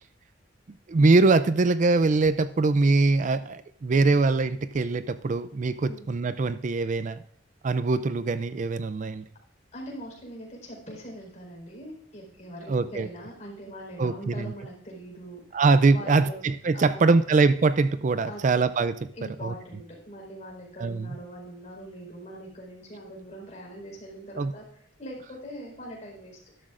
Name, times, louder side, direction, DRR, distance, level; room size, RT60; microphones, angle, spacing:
voice 1, 0.9-7.2 7.6-9.3 12.7-13.1 14.0-14.5 15.5-18.9 19.4-19.5 20.8-21.1 24.4-24.5, right 3 dB, 40° right, 13 dB, 0.4 m, -23 dB
voice 2, 9.7-15.6 15.9-17.1 18.2-18.6 19.1-26.4, equal, 40° left, -2 dB, 4.5 m, -42 dB
12.5 x 12.5 x 2.5 m, 0.65 s
head